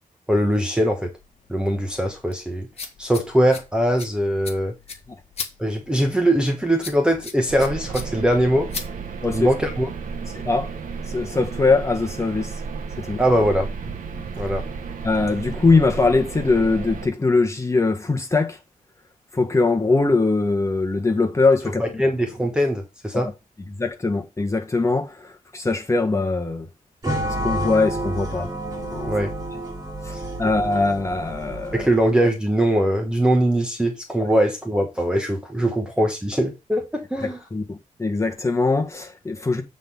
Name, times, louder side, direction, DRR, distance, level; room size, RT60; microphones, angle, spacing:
voice 1, 0.3-1.1 1.5-2.7 3.0-4.7 5.6-8.7 9.3-9.9 13.2-13.7 14.4-14.6 21.8-23.3 29.1-29.3 30.1-30.2 31.7-37.4, right 1 dB, 5° right, 1.2 m, -21 dB
sound 1, 1.2-9.6, left 5 dB, 45° left, 1.6 m, -39 dB
sound 2, 7.5-17.1, right 5 dB, 80° right, 1.4 m, -33 dB
voice 2, 10.3-10.7 11.1-12.5 13.0-13.2 14.1-14.2 15.0-18.6 19.3-21.8 23.1-23.3 23.7-26.7 27.3-28.5 28.9-29.1 30.0-31.9 37.5-39.6, left 3 dB, 20° left, 1.6 m, -21 dB
sound 3, 27.0-32.2, right 1 dB, 25° right, 2.8 m, -30 dB
8.3 x 4.0 x 5.4 m
wide cardioid pair, 145°, 14 cm